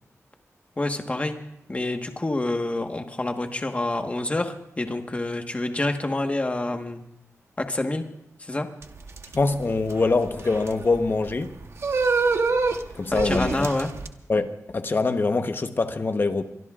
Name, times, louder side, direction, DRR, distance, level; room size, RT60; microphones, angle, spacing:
voice 1, 0.8-1.3 1.7-7.0 7.6-8.0 8.4-8.7 13.1-13.9, left 2 dB, 25° left, 5 dB, 1.4 m, -27 dB
sound 1, 8.8-14.1, right 4 dB, 55° right, 1.0 m, -27 dB
voice 2, 9.3-11.5 12.9-13.7 14.3-16.4, left 3 dB, 40° left, 8 dB, 1.0 m, -24 dB
24.5 x 23.0 x 2.5 m, 0.80 s
wide cardioid pair, 120°, 5 cm